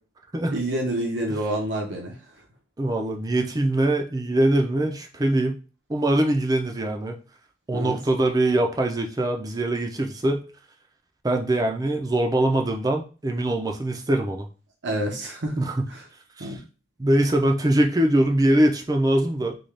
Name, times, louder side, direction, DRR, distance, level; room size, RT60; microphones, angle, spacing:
voice 1, 0.5-2.2 7.7-8.0 14.8-16.1 16.4-16.6, right 1 dB, 85° right, 0 dB, 0.9 m, -28 dB
voice 2, 2.8-5.6 5.9-7.2 7.7-10.4 11.2-14.5 15.6-15.8 16.4-16.5 17.0-19.6, right 1 dB, 20° right, 3 dB, 0.4 m, -22 dB
3.8 x 2.3 x 3.3 m, 0.35 s
head